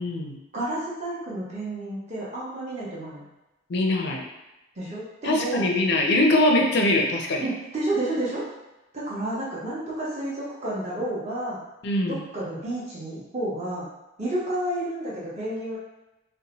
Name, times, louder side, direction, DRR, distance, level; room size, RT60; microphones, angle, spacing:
voice 1, 0.0-0.4 3.7-4.2 5.2-7.5 11.8-12.2, left 1 dB, 55° left, 1 dB, 0.4 m, -22 dB
voice 2, 0.5-3.2 4.8-5.7 7.4-8.4 8.9-11.6 12.0-13.9 14.2-15.8, right 1 dB, 35° right, -7 dB, 0.8 m, -30 dB
2.7 x 2.1 x 2.9 m, 1.0 s
head